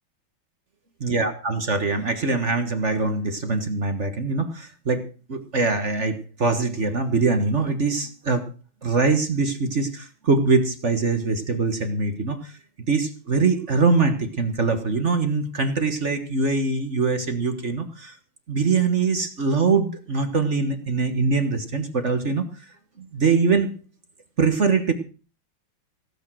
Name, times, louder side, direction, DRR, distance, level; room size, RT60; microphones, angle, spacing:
voice 1, 1.0-5.0 5.3-8.4 8.8-12.5 12.9-18.2 18.5-22.4 23.0-23.7 24.4-24.9, right 4 dB, 40° right, 8 dB, 1.6 m, -23 dB
17.0 x 8.6 x 6.2 m, 0.36 s
omnidirectional pair, 2.2 m